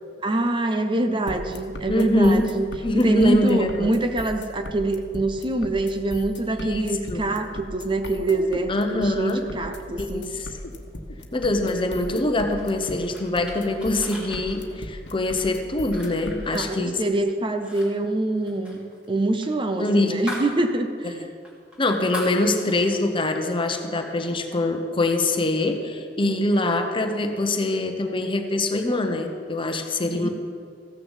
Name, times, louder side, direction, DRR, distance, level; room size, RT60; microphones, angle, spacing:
voice 1, 0.2-2.7 2.9-10.3 16.5-18.8 19.1-21.3 26.2-26.7 30.1-30.3, right 2 dB, 30° right, 7 dB, 0.7 m, -25 dB
sound 1, 1.3-16.6, left 1 dB, 75° left, 1.2 m, -37 dB
voice 2, 1.9-2.5 2.8-3.9 6.6-7.2 8.7-9.4 10.0-10.5 11.3-17.0 19.8-20.2 21.8-30.3, left 2 dB, 30° left, 5 dB, 1.0 m, -24 dB
sound 2, 12.6-17.2 17.5-17.9 18.1-20.6 20.9-21.0 21.4-23.0, left 1 dB, 5° right, 2.8 m, -39 dB
14.5 x 6.7 x 7.4 m, 2.2 s
head